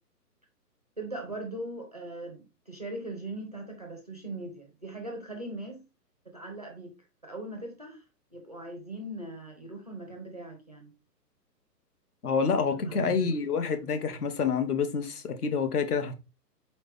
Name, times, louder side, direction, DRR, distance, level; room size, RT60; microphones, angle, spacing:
voice 1, 1.0-5.8 6.3-6.9 7.2-8.0 8.3-10.9 12.7-13.4 13.7-14.2, right 2 dB, 25° right, 0.4 m, -40 dB
voice 2, 12.2-16.1, left 5 dB, 65° left, 0.9 m, -28 dB
4.0 x 3.1 x 3.5 m
figure-of-eight pair, 130°, 49 cm